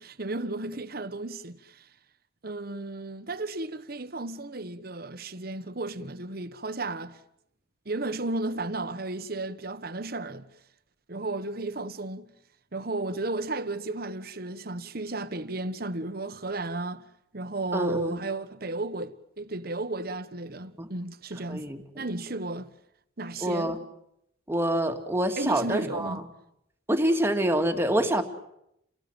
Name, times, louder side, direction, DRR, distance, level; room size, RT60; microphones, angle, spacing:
voice 1, 0.0-1.9 2.4-7.2 7.8-10.5 11.1-12.3 12.7-17.1 17.3-22.7 23.2-23.8 25.4-26.2, right 2 dB, 55° right, 1.3 m, -34 dB
voice 2, 17.7-18.2 20.8-20.9 21.5-22.0 23.4-23.8 24.5-26.1 26.9-28.2, right 1 dB, 15° right, 2.3 m, -26 dB
29.5 x 18.5 x 9.0 m
head